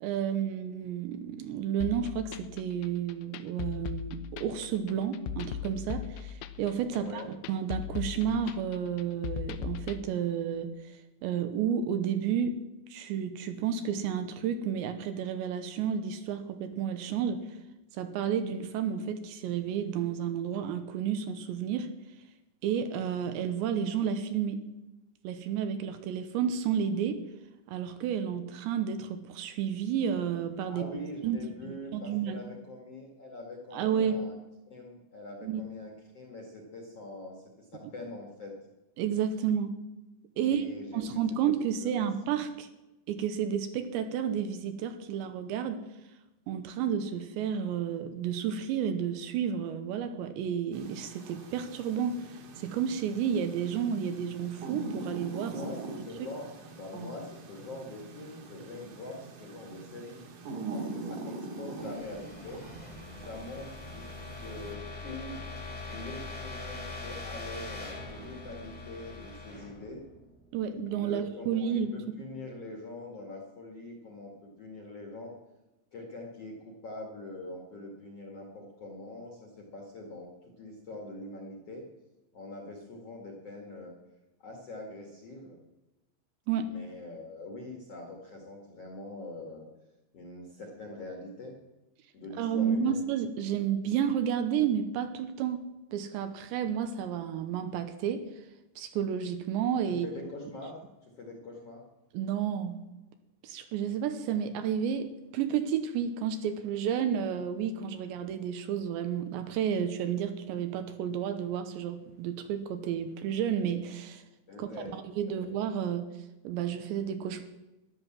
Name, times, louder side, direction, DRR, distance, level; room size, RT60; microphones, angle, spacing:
voice 1, 0.0-7.2 7.5-12.5 12.9-17.4 17.9-21.9 22.6-24.6 25.2-27.2 27.7-30.9 31.2-32.4 33.7-34.2 35.4-35.6 39.0-39.7 40.4-40.7 40.9-42.7 43.1-45.8 46.5-55.6 70.5-71.9 86.5-86.7 92.4-95.6 95.9-98.3 98.8-100.1 102.1-102.8 103.4-114.2 114.6-116.1 116.4-117.4, right 8 dB, 75° right, 9 dB, 2.9 m, -31 dB
sound 1, 1.8-10.0, left 9 dB, 80° left, 3.0 m, -38 dB
voice 2, 6.9-7.3 30.7-34.4 34.7-38.5 40.3-41.2 41.6-42.1 55.4-60.2 60.7-62.6 63.2-64.1 64.4-65.4 65.9-70.0 70.9-75.3 75.9-80.3 80.6-81.8 82.3-83.9 84.4-85.6 86.6-89.7 90.1-91.6 92.1-93.0 99.9-100.8 101.2-101.8 114.5-115.0 115.3-115.5, left 2 dB, 45° left, 1 dB, 2.1 m, -43 dB
sound 2, 50.7-64.7, right 3 dB, 55° right, 3.0 m, -43 dB
sound 3, 61.0-70.8, left 2 dB, 15° left, 1.6 m, -43 dB
13.5 x 11.5 x 7.4 m, 0.99 s
omnidirectional pair, 5.6 m